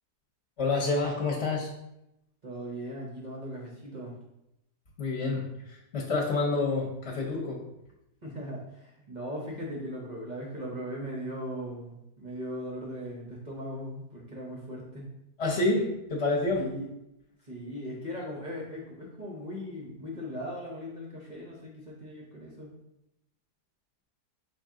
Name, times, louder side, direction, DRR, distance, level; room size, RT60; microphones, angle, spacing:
voice 1, 0.6-1.7 5.0-7.6 15.4-16.6, left 3 dB, 45° left, -3 dB, 1.1 m, -28 dB
voice 2, 2.4-4.1 8.2-15.1 16.5-16.9 17.4-22.7, equal, 40° right, -3 dB, 0.7 m, -38 dB
5.5 x 2.6 x 3.6 m, 0.86 s
omnidirectional pair, 1.8 m